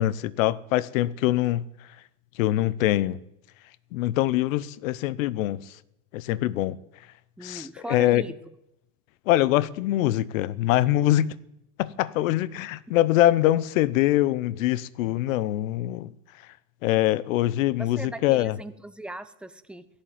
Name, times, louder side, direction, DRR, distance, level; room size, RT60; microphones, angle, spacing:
voice 1, 0.0-1.7 2.4-3.2 3.9-5.7 6.1-6.8 7.4-8.2 9.3-11.4 11.8-16.1 16.8-18.6, left 14 dB, 75° left, 0.9 m, -23 dB
voice 2, 7.4-8.3 17.8-19.9, right 1 dB, ahead, 0.9 m, -38 dB
16.0 x 11.5 x 7.5 m
hypercardioid pair, 100°, 40 cm